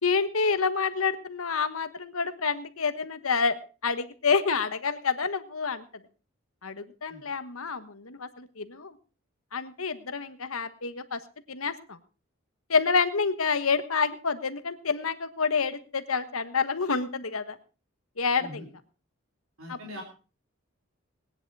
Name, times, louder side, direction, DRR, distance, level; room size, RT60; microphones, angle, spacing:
voice 1, 0.0-3.6 3.8-5.8 6.6-8.9 9.5-11.2 11.5-12.0 12.7-17.6 18.2-18.7 19.7-19.8, left 5 dB, 85° left, 11 dB, 1.4 m, -28 dB
voice 2, 19.6-20.0, left 1 dB, 80° right, 0 dB, 3.1 m, -41 dB
19.0 x 10.5 x 4.8 m, 0.35 s
head